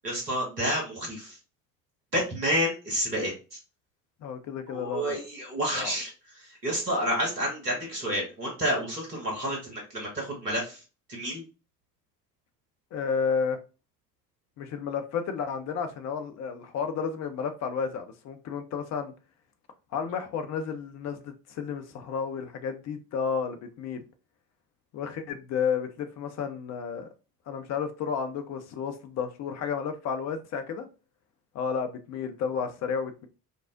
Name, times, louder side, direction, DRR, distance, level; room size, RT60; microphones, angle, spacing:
voice 1, 0.0-1.4 2.1-3.3 4.7-6.1 6.6-10.8 11.1-11.4, equal, 85° right, -2 dB, 1.3 m, -29 dB
voice 2, 4.2-5.2 5.7-6.0 12.9-13.6 14.6-19.1 19.9-24.0 24.9-27.1 27.5-30.9 31.5-33.3, left 6 dB, 35° left, 7 dB, 0.6 m, -32 dB
5.1 x 2.0 x 2.4 m, 0.32 s
figure-of-eight pair, 55°, 47 cm